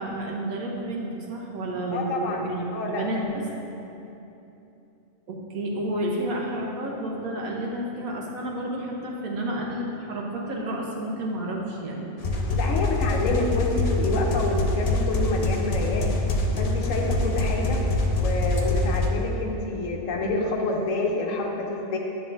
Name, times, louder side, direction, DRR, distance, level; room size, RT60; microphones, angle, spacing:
voice 1, 0.0-3.5 5.3-12.1, right 1 dB, 90° right, -1 dB, 1.4 m, -30 dB
voice 2, 1.9-2.4 2.7-3.0 12.6-16.1 16.6-17.8 18.2-22.0, left 2 dB, 75° left, 0 dB, 1.1 m, -28 dB
sound 1, 12.2-19.1, left 2 dB, 55° left, 0.4 m, -24 dB
9.3 x 6.2 x 2.5 m, 2.9 s
omnidirectional pair, 1.4 m